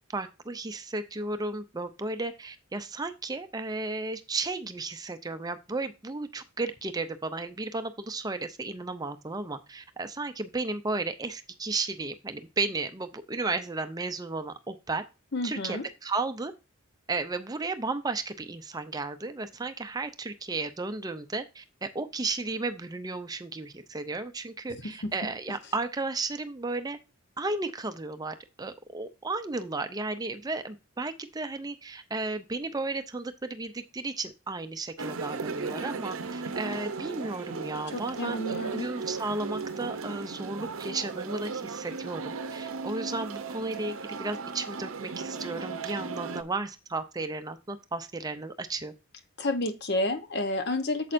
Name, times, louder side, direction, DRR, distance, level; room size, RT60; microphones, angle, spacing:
voice 1, 0.1-15.0 15.4-16.5 17.1-27.0 27.4-43.9 44.2-48.9, right 3 dB, 15° right, 0.5 m, -34 dB
voice 2, 15.3-15.9 24.8-25.1 37.9-38.9 49.4-51.1, left 1 dB, 50° left, 1.0 m, -30 dB
sound 1, 35.0-46.4, right 4 dB, 70° right, 0.7 m, -36 dB
8.6 x 7.4 x 2.6 m
head